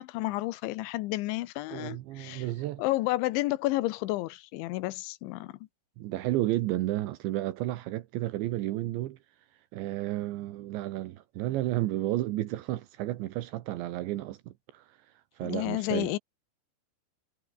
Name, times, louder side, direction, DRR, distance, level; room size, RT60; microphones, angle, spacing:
voice 1, 0.0-2.5 2.8-5.6 15.4-16.2, left 18 dB, 90° left, 3.1 m, -31 dB
voice 2, 1.7-2.8 6.0-9.2 9.7-15.0 15.4-16.1, right 15 dB, 80° right, 3.3 m, -32 dB
omnidirectional pair, 5.4 m